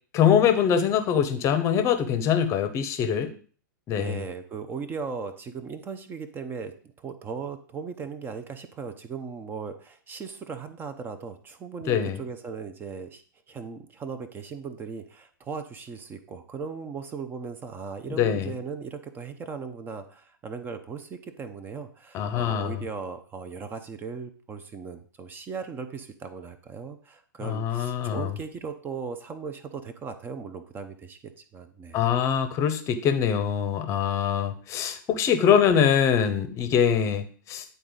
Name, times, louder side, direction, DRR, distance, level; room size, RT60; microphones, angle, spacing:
voice 1, 0.1-3.3 3.9-4.2 11.9-12.2 18.2-18.5 22.1-22.8 27.4-28.3 31.9-37.6, left 8 dB, 25° left, 9 dB, 0.8 m, -23 dB
voice 2, 3.9-6.7 7.0-13.2 13.5-32.1, right 5 dB, 20° right, 9 dB, 0.7 m, -38 dB
9.3 x 4.0 x 3.8 m, 0.43 s
figure-of-eight pair, 105°, 11 cm